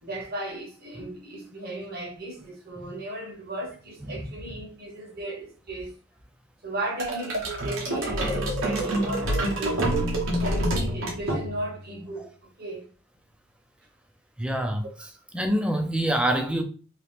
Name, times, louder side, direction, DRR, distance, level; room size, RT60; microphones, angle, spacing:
voice 1, 0.0-5.9 6.6-12.9, right 1 dB, 50° right, 1.0 m, -36 dB
sound 1, 7.0-11.8, right 1 dB, 80° right, 1.1 m, -27 dB
voice 2, 14.4-14.8 15.3-16.6, right 1 dB, 5° right, 0.4 m, -26 dB
2.9 x 2.9 x 3.3 m
head